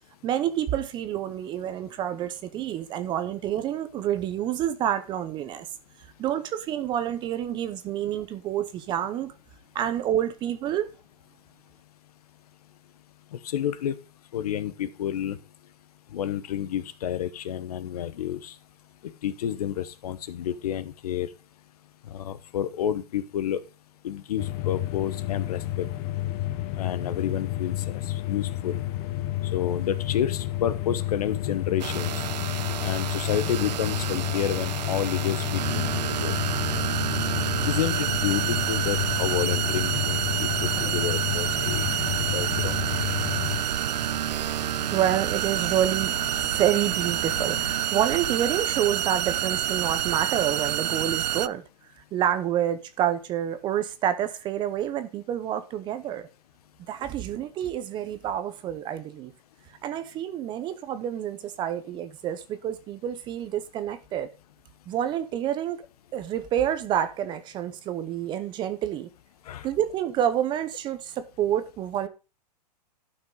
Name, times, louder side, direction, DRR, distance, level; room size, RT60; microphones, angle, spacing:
voice 1, 0.2-5.7 6.2-9.3 9.7-10.9 44.9-46.1 46.5-51.6 52.1-56.3 56.9-59.3 59.8-64.3 64.9-65.8 66.1-69.1 69.6-72.1, right 10 dB, 20° right, 0.7 m, -28 dB
voice 2, 13.3-13.9 14.3-15.4 16.1-18.5 19.2-21.3 22.1-23.6 24.0-25.9 26.8-27.7 28.3-28.8 29.5-32.1 32.8-36.3 37.7-42.7 69.5-69.7, left 10 dB, 65° left, 1.1 m, -30 dB
sound 1, 24.4-43.6, left 14 dB, 30° left, 0.7 m, -30 dB
sound 2, 31.8-51.5, right 11 dB, 85° right, 0.4 m, -28 dB
sound 3, 34.7-47.8, left 3 dB, 50° left, 2.7 m, -44 dB
12.0 x 5.8 x 3.9 m
hypercardioid pair, 140°, 21 cm